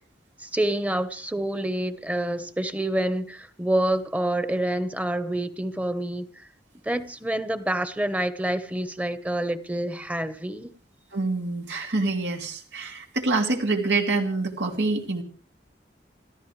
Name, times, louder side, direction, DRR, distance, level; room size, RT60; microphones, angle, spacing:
voice 1, 0.4-6.3 6.8-10.7, right 1 dB, 10° right, 1.2 m, -27 dB
voice 2, 11.1-15.2, right 3 dB, 80° right, 2.8 m, -26 dB
29.0 x 14.0 x 3.3 m
head